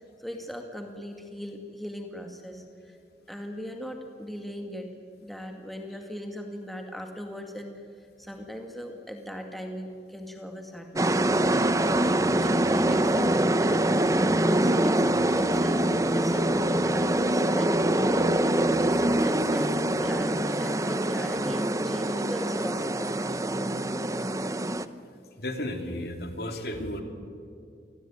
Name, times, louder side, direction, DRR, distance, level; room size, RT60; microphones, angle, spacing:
voice 1, 0.2-3.0 3.3-4.9 5.2-7.7 8.2-11.7 12.0-13.9 14.3-18.0 18.8-23.2, equal, ahead, 3 dB, 2.1 m, -39 dB
sound 1, 11.0-24.9, right 1 dB, 20° right, 0.8 m, -24 dB
voice 2, 25.4-27.0, left 1 dB, 60° left, 5 dB, 3.2 m, -33 dB
28.0 x 21.0 x 9.4 m, 2.3 s
head